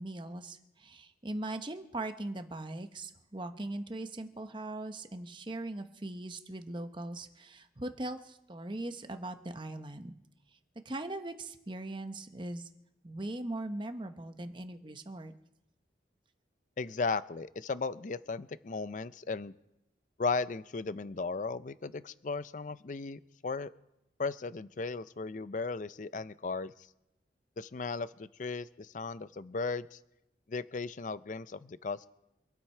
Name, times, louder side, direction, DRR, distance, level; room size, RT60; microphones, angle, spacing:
voice 1, 0.0-10.1 10.8-12.7 13.0-15.3, right 2 dB, 25° right, 8 dB, 0.9 m, -40 dB
voice 2, 16.8-19.6 20.2-23.7 24.2-26.7 27.6-30.0 30.5-32.1, left 4 dB, 45° left, 16 dB, 0.5 m, -36 dB
26.0 x 9.4 x 4.4 m, 0.87 s
head